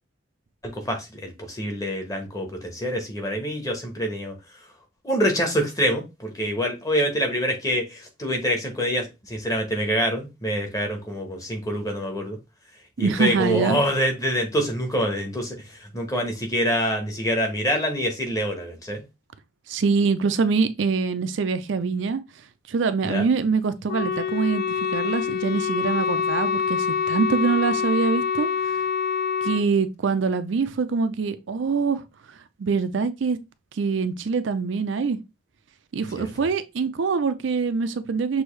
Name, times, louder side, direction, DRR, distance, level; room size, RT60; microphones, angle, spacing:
voice 1, 0.6-4.3 5.0-12.4 13.0-19.0 23.0-23.3 36.1-36.3, equal, 20° left, 1.1 m, -26 dB
voice 2, 13.0-13.8 19.7-22.2 22.7-28.5 29.4-32.0 32.6-33.4 33.8-35.2 35.9-38.4, right 5 dB, 70° right, 0.4 m, -24 dB
Wind instrument woodwind instrument, 23.9-29.6, left 6 dB, 50° left, 0.3 m, -25 dB
6.1 x 2.7 x 3.2 m
head